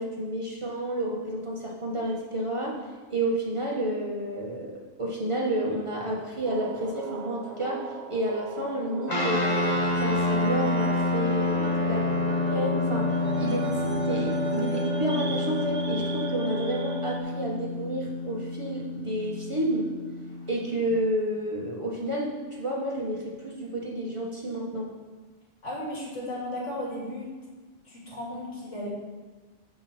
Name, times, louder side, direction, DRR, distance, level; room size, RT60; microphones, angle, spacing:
voice 1, 0.0-2.7 3.1-4.7 5.0-7.8 8.1-9.6 10.0-12.0 12.5-13.1 13.3-13.7 14.0-19.8 20.5-24.9, right 1 dB, 25° right, -4 dB, 1.8 m, -30 dB
sound 1, 6.5-17.2, right 3 dB, 60° right, 1.2 m, -36 dB
sound 2, 9.1-20.9, left 2 dB, 35° left, 1.8 m, -28 dB
voice 2, 25.6-27.3 27.8-28.9, left 1 dB, 90° left, -5 dB, 3.3 m, -35 dB
15.0 x 5.6 x 4.5 m, 1.3 s
omnidirectional pair, 1.2 m